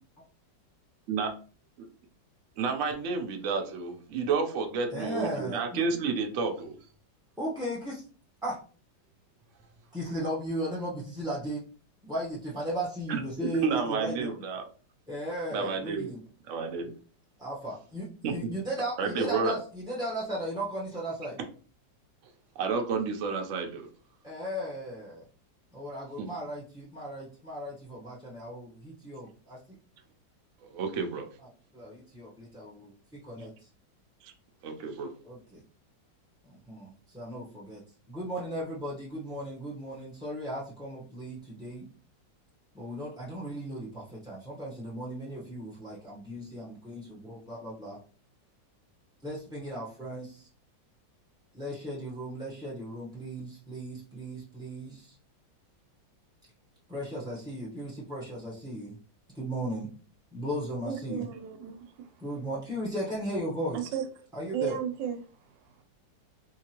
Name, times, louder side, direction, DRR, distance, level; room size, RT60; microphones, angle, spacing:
voice 1, 2.6-6.8 13.6-14.7 15.5-16.1 16.5-16.9 18.2-18.3 19.0-19.6 22.6-23.9 26.2-26.3 30.6-31.3 34.2-34.3 34.6-35.1, right 5 dB, 60° right, 4 dB, 0.8 m, -30 dB
voice 2, 4.9-5.8 7.4-8.0 8.4-8.6 9.9-11.6 12.0-14.3 15.1-16.2 17.4-21.4 24.2-25.2 25.7-29.6 31.4-31.5 31.7-32.9 33.2-33.5 35.2-35.6 36.4-37.8 38.1-41.9 42.7-48.0 49.2-50.5 51.5-55.1 56.9-59.0 59.3-59.9 60.3-61.3 62.2-63.9 64.3-64.8, right 1 dB, 5° right, -6 dB, 0.5 m, -36 dB
voice 3, 60.9-62.1 63.7-64.0 64.5-65.2, right 9 dB, 80° right, 7 dB, 1.3 m, -34 dB
3.7 x 2.8 x 2.9 m, 0.39 s
omnidirectional pair, 2.0 m